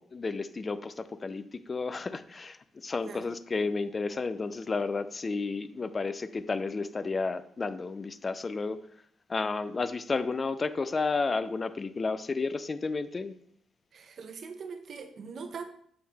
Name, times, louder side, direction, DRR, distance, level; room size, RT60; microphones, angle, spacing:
voice 1, 0.0-8.8 9.3-13.3, left 4 dB, 30° left, 13 dB, 0.4 m, -32 dB
voice 2, 13.9-15.6, right 5 dB, 55° right, 8 dB, 0.8 m, -41 dB
6.6 x 3.9 x 4.1 m, 0.66 s
cardioid pair, 90°, 0 cm